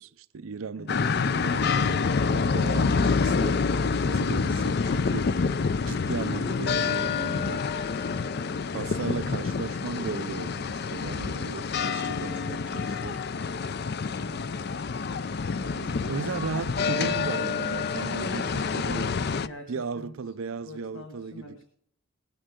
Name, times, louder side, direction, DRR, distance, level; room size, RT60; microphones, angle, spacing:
voice 1, 0.0-2.0 2.3-3.7 4.1-5.4 5.9-7.7 8.7-13.2 15.6-18.4 18.7-19.1 19.7-21.6, right 5 dB, 85° right, 0.5 m, -36 dB
sound 1, 0.9-19.5, left 5 dB, 50° left, 0.4 m, -27 dB
voice 2, 14.2-14.6 18.2-20.1 20.6-21.6, left 2 dB, 75° left, 1.5 m, -43 dB
19.5 x 9.1 x 3.7 m
head